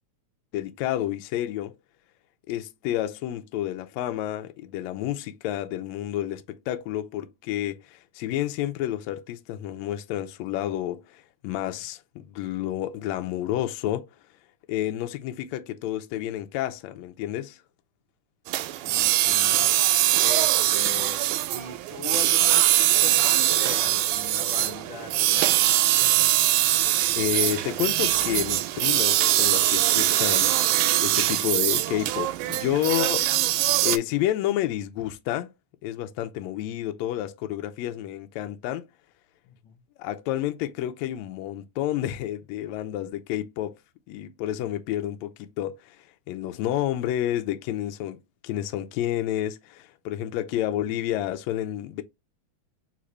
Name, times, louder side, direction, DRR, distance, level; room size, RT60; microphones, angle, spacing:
voice 1, 0.5-1.7 2.5-14.1 14.7-17.6 27.1-30.5 31.0-33.3 33.8-35.5 35.8-38.9 40.0-43.7 44.1-46.0 46.3-48.2 48.4-52.0, left 13 dB, 80° left, 1.6 m, -30 dB
sound 1, 18.5-34.0, right 14 dB, 80° right, 1.9 m, -22 dB
voice 2, 18.6-21.2 21.5-25.6 39.4-39.8, left 5 dB, 60° left, 1.3 m, -40 dB
4.2 x 3.7 x 3.2 m
omnidirectional pair, 3.8 m